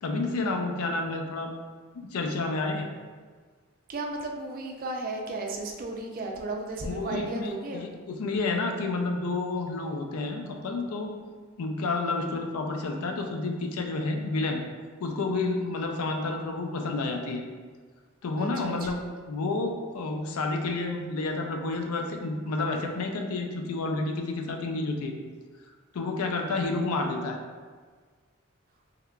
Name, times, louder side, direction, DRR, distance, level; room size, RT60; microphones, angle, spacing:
voice 1, 0.0-1.5 1.9-2.9 6.8-11.1 11.6-14.6 15.0-17.4 18.2-19.0 19.3-25.2 25.9-27.4, left 3 dB, 90° left, 3 dB, 0.4 m, -30 dB
voice 2, 3.9-7.9 18.4-19.0, right 2 dB, 40° right, 1 dB, 0.4 m, -34 dB
3.6 x 3.3 x 2.2 m, 1.5 s
head